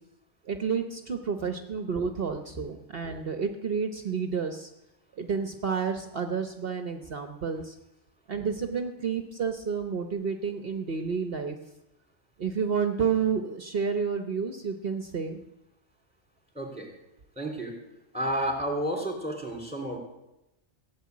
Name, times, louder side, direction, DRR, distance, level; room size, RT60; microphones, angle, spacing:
voice 1, 0.5-4.7 5.1-7.8 8.3-11.6 12.4-15.4, right 6 dB, 55° right, 6 dB, 1.2 m, -30 dB
voice 2, 16.5-16.9 17.4-17.7 18.1-20.0, right 1 dB, 5° right, 2 dB, 3.4 m, -31 dB
16.0 x 7.3 x 9.5 m, 0.91 s
omnidirectional pair, 1.2 m